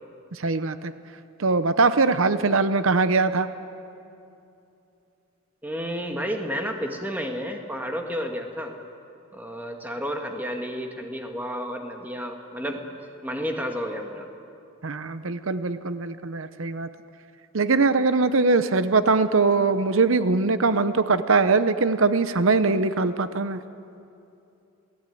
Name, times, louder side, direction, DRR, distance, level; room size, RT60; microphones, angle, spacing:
voice 1, 0.3-0.9 1.4-3.5 14.8-16.9 17.5-23.6, right 3 dB, 70° right, 12 dB, 0.8 m, -22 dB
voice 2, 5.6-8.8 9.3-12.9 13.2-14.3, equal, 10° right, 3 dB, 1.8 m, -31 dB
28.0 x 18.0 x 9.3 m, 2.7 s
head